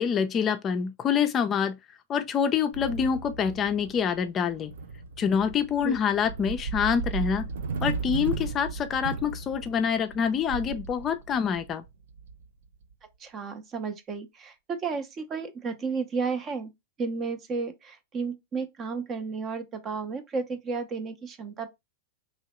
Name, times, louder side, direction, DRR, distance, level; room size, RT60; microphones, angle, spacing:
voice 1, 0.0-1.8 2.1-4.7 5.2-7.5 7.8-11.8, left 7 dB, 30° left, 0.4 m, -26 dB
sound 1, 2.7-12.9, right 5 dB, 75° right, 0.4 m, -36 dB
voice 2, 13.2-16.7 17.0-21.7, right 4 dB, 30° right, 0.6 m, -32 dB
3.0 x 2.7 x 2.9 m
hypercardioid pair, 105°, 0 cm